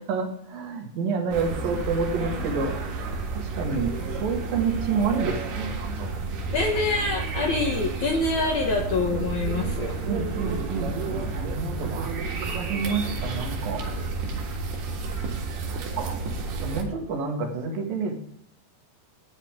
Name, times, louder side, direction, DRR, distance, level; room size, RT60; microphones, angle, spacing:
voice 1, 0.1-6.5 10.0-12.1 12.4-13.9 15.7-16.2 16.6-18.1, right 5 dB, 65° right, 1 dB, 3.2 m, -29 dB
sound 1, 1.3-16.8, right 4 dB, 85° right, 3.7 m, -31 dB
voice 2, 6.5-9.9, left 3 dB, 65° left, 1 dB, 2.1 m, -25 dB
13.5 x 8.9 x 3.6 m, 0.71 s
omnidirectional pair, 4.5 m